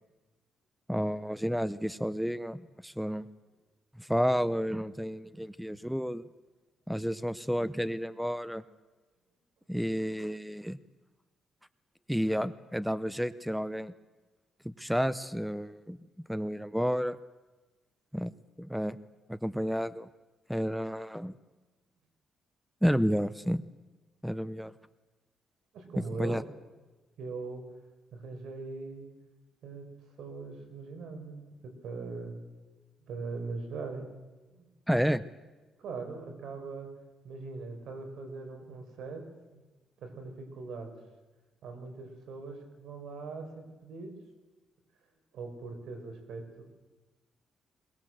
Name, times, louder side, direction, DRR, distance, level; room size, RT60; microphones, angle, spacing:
voice 1, 0.9-3.2 4.0-6.2 6.9-8.6 9.7-10.8 12.1-13.9 14.6-16.0 16.3-17.2 18.1-18.3 18.6-19.0 19.3-20.1 20.5-21.3 22.8-23.6 24.2-24.7 26.1-26.4 34.9-35.2, equal, ahead, 16 dB, 0.7 m, -31 dB
voice 2, 25.7-26.4 27.2-27.6 28.1-29.1 29.6-29.9 30.2-32.3 32.6-32.7 33.0-34.1 34.5-34.7 35.8-36.9 37.2-39.2 39.5-39.6 40.0-40.9 41.6-44.1 45.3-46.6, right 4 dB, 75° right, 5 dB, 4.9 m, -41 dB
22.0 x 20.0 x 7.8 m, 1.2 s
cardioid pair, 95°, 0 cm